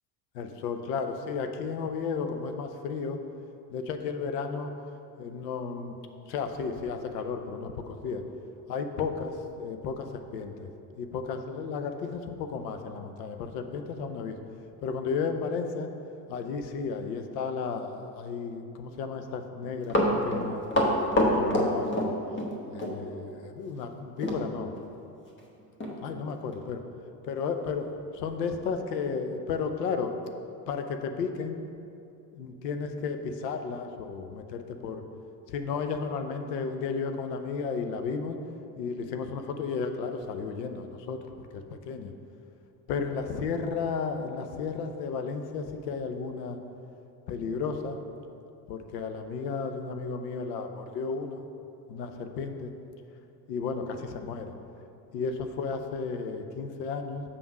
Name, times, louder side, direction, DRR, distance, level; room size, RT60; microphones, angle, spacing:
voice 1, 0.3-3.2 3.7-4.7 5.2-5.9 6.3-8.2 8.7-14.4 14.8-15.9 16.3-20.6 21.2-22.1 22.7-24.7 26.0-26.8 27.2-30.2 30.7-31.7 32.3-35.0 35.5-38.4 38.8-42.1 42.9-46.6 47.3-48.0 48.7-51.4 51.9-52.7 53.5-54.5 55.1-57.2, left 5 dB, 80° left, 7 dB, 0.7 m, -33 dB
Run, 19.6-22.5 22.8-23.0 24.2-24.4 24.8-24.9 25.4-25.5 25.8-26.0 26.5-26.6, equal, 25° left, 1.1 m, -25 dB
6.8 x 3.6 x 6.2 m, 2.6 s
hypercardioid pair, 80°, 49 cm